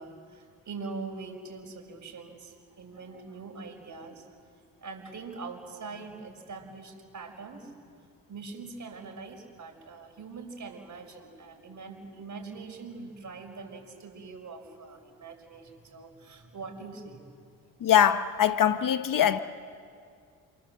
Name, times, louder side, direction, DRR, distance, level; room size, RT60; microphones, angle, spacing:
voice 1, 0.0-4.3 4.8-7.9 8.3-17.2, right 4 dB, 50° right, 5.3 m, -43 dB
voice 2, 17.8-19.4, left 9 dB, 55° left, 1.1 m, -22 dB
28.5 x 23.5 x 7.7 m
supercardioid pair, 70°, 38 cm